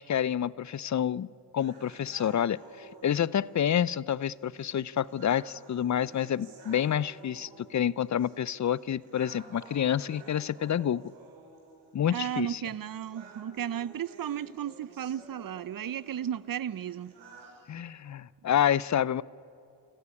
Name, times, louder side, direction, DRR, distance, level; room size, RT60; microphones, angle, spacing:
voice 1, 0.0-11.1 11.9-12.6 17.7-19.2, left 9 dB, 40° left, 0.5 m, -28 dB
sound 1, 1.6-17.6, right 3 dB, 75° right, 5.3 m, -53 dB
voice 2, 12.0-17.1, right 10 dB, 45° right, 0.8 m, -34 dB
27.0 x 14.5 x 9.8 m
supercardioid pair, 55°, 46 cm